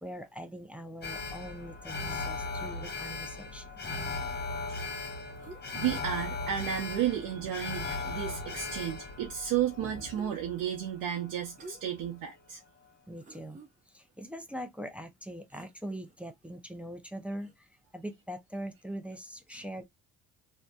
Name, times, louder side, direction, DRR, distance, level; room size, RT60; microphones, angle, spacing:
voice 1, 0.0-3.9 13.1-19.8, equal, 5° right, 0.4 m, -42 dB
Alarm, 1.0-11.3 11.6-11.7, left 3 dB, 30° left, 0.8 m, -38 dB
sound 1, 5.4-6.0 7.6-7.7 7.9-8.9 10.0-10.6 11.5-12.1 12.5-12.6 13.1-13.7 15.5-16.3 17.3-17.5, right 2 dB, 20° right, 0.8 m, -51 dB
voice 2, 5.7-12.6 19.5-19.6, right 10 dB, 70° right, 0.7 m, -33 dB
2.6 x 2.1 x 2.2 m
supercardioid pair, 70°, 36 cm